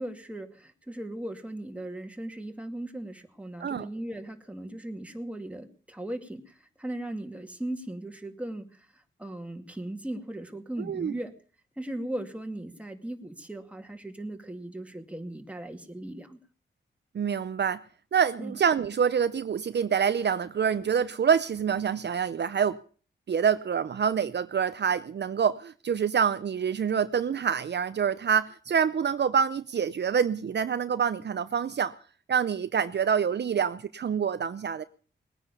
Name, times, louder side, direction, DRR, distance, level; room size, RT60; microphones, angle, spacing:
voice 1, 0.0-11.3 11.8-16.4 18.4-18.6, right 1 dB, 5° right, 2.3 m, -38 dB
voice 2, 10.9-11.2 17.1-17.8 18.1-22.8 23.3-31.9 32.3-34.8, right 7 dB, 60° right, 0.7 m, -26 dB
20.0 x 9.8 x 6.9 m
cardioid pair, 85°, 20 cm